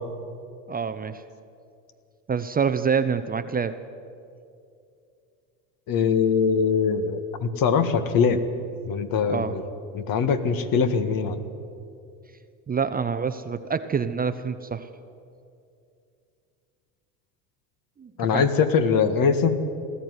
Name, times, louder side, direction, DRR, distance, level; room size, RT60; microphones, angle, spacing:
voice 1, 0.7-1.2 2.3-3.8 9.3-9.6 12.7-14.9 18.0-18.5, right 6 dB, 20° right, 10 dB, 0.7 m, -26 dB
voice 2, 5.9-8.4 8.9-9.6 9.9-11.4 18.2-19.5, left 6 dB, 50° left, 10 dB, 1.7 m, -22 dB
19.5 x 14.0 x 9.6 m, 2.5 s
supercardioid pair, 95°, 45 cm